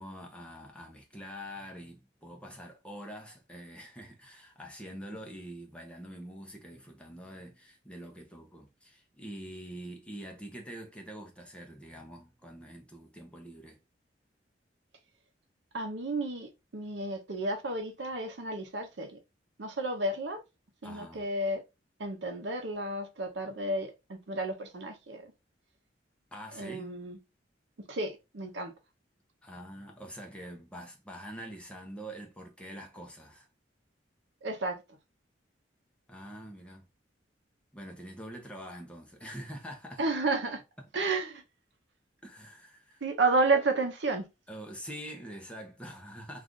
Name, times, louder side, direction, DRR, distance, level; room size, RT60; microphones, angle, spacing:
voice 1, 0.0-13.8 20.8-21.3 26.3-26.9 29.4-33.5 36.1-36.9 37.7-40.0 42.2-43.1 44.5-46.4, equal, 5° left, 0.6 m, -45 dB
voice 2, 15.7-19.2 19.6-20.4 20.8-21.6 22.0-25.3 26.5-27.2 27.9-28.7 34.4-34.8 40.0-40.6 40.9-41.4 43.0-44.3, right 2 dB, 70° right, 0.7 m, -31 dB
2.4 x 2.4 x 3.6 m
head